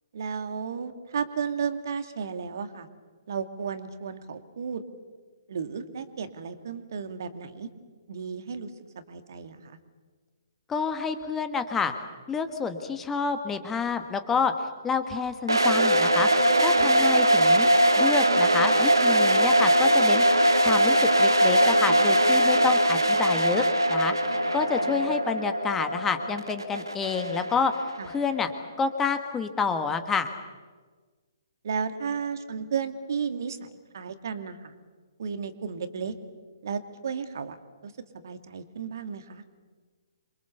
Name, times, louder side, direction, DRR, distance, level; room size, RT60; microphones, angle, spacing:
voice 1, 0.1-2.9 3.3-4.8 5.5-7.7 8.1-8.7 9.1-9.8 24.3-25.2 28.0-28.1 31.6-34.7 35.2-36.1 36.6-37.6 37.8-39.4, right 6 dB, 50° right, 9 dB, 2.0 m, -34 dB
voice 2, 10.7-11.9 12.3-17.7 18.0-20.2 20.6-23.6 23.9-27.7 28.0-28.5 28.8-30.3, left 5 dB, 10° left, 8 dB, 1.6 m, -28 dB
sound 1, 15.5-28.3, right 1 dB, 80° right, 2.1 m, -21 dB
27.5 x 24.0 x 7.0 m, 1.4 s
figure-of-eight pair, 130°, 2 cm